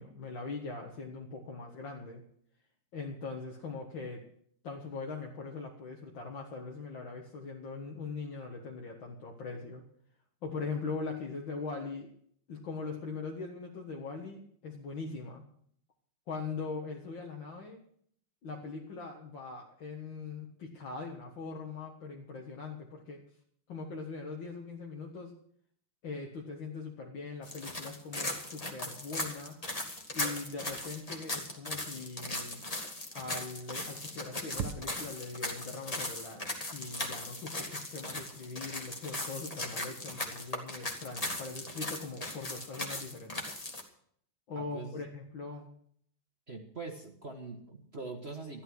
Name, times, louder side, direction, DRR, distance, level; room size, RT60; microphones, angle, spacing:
voice 1, 0.0-2.2 2.9-4.2 4.6-9.8 10.4-12.1 12.5-15.4 16.3-17.8 18.4-23.2 23.7-25.3 26.0-29.6 30.1-32.6 33.1-43.4 44.5-45.7, left 4 dB, 60° left, 0 dB, 2.2 m, -41 dB
sound 1, 27.4-43.8, left 1 dB, 20° left, 1.8 m, -38 dB
sound 2, 30.7-31.2 33.3-33.7 34.0-34.1 34.5-35.3, right 8 dB, 80° right, 1.9 m, -41 dB
voice 2, 44.5-45.0 46.5-48.6, right 3 dB, 35° right, 3 dB, 1.4 m, -43 dB
14.0 x 12.0 x 6.3 m, 0.64 s
omnidirectional pair, 2.4 m